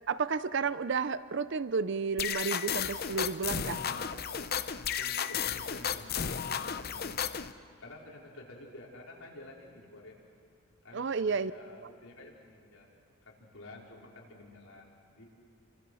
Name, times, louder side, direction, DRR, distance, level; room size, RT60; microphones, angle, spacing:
voice 1, 0.1-3.8 10.9-11.5 11.8-11.9, right 5 dB, 55° right, 14 dB, 0.5 m, -32 dB
sound 1, 2.2-7.5, left 8 dB, 45° left, 0.7 m, -33 dB
voice 2, 3.8-4.6 5.0-6.1 6.5-7.4 7.8-10.1 10.8-12.9 13.2-15.3, left 2 dB, 70° left, -3 dB, 4.7 m, -51 dB
29.5 x 25.0 x 6.3 m, 2.4 s
head